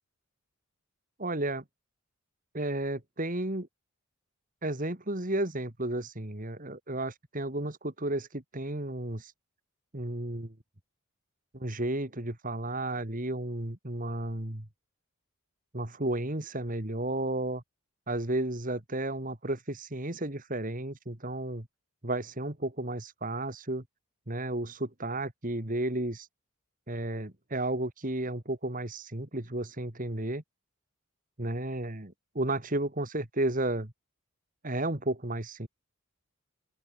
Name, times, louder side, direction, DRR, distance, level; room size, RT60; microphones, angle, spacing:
voice 1, 1.2-1.6 2.5-3.7 4.6-9.3 9.9-10.5 11.5-14.7 15.7-17.6 18.1-21.7 22.0-23.8 24.3-26.3 26.9-30.4 31.4-33.9 34.6-35.7, right 1 dB, 40° right, 2.5 m, -33 dB
open air
head